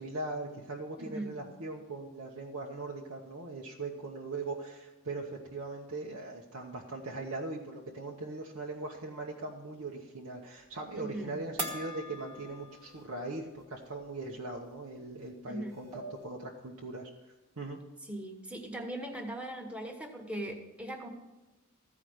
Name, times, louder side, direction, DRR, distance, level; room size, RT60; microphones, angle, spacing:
voice 1, 0.0-17.1 17.6-17.8, right 2 dB, 85° right, -2 dB, 1.1 m, -40 dB
voice 2, 1.0-1.5 10.9-11.4 15.5-15.8 18.1-21.1, right 1 dB, 5° right, 3 dB, 1.2 m, -40 dB
sound 1, 11.6-13.2 13.6-13.7 15.2-15.3 15.7-16.3, right 1 dB, 25° right, 1.4 m, -41 dB
14.5 x 4.9 x 7.9 m, 1.1 s
head